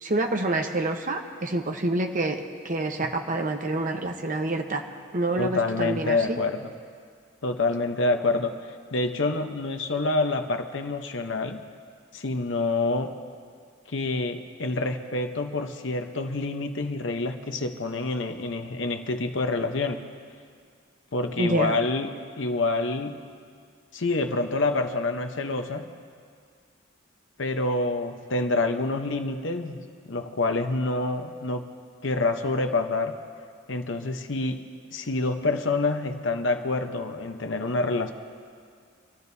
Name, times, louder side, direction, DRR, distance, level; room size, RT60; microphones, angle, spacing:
voice 1, 0.0-4.8 5.1-6.4 21.4-21.8, right 2 dB, 40° right, 4 dB, 1.0 m, -27 dB
voice 2, 5.4-6.7 7.4-8.6 8.9-11.6 12.1-13.1 13.9-20.0 21.1-23.2 23.9-25.9 27.4-31.7 32.0-33.2 33.7-34.6 34.9-38.1, left 2 dB, 70° left, 6 dB, 0.9 m, -27 dB
26.0 x 13.5 x 2.8 m, 2.2 s
head